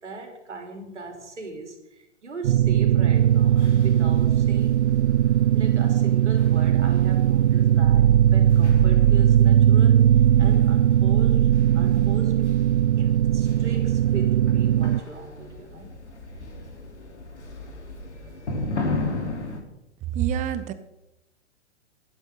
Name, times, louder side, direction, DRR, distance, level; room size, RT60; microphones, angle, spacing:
voice 1, 0.0-4.9 5.5-10.0 10.4-11.5 11.7-12.4 13.0-15.9, right 2 dB, 85° right, 3 dB, 3.3 m, -38 dB
sound 1, 2.4-15.0, right 11 dB, 55° right, 0.5 m, -19 dB
sound 2, 3.1-19.6, left 2 dB, 75° left, 3.4 m, -37 dB
voice 2, 20.1-20.7, right 9 dB, 20° right, 12 dB, 0.9 m, -26 dB
13.5 x 12.0 x 3.9 m, 0.94 s
hypercardioid pair, 120°, 34 cm